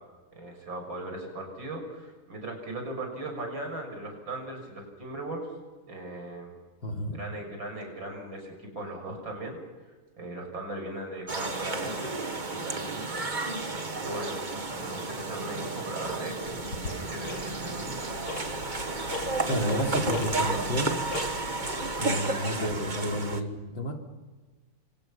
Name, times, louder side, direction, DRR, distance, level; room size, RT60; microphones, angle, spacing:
voice 1, 0.3-5.5 5.9-6.5 7.1-9.6 10.2-13.2 14.0-14.4 14.7-17.9, right 2 dB, 60° right, 3 dB, 7.4 m, -38 dB
voice 2, 6.8-7.2 19.5-21.0 22.0-23.9, equal, 65° left, 1 dB, 4.2 m, -30 dB
sound 1, 11.3-23.4, right 3 dB, 25° right, 1.5 m, -32 dB
Tick-tock, 16.4-22.0, left 2 dB, 80° left, 3.2 m, -40 dB
29.0 x 26.0 x 5.8 m, 1.3 s
omnidirectional pair, 2.3 m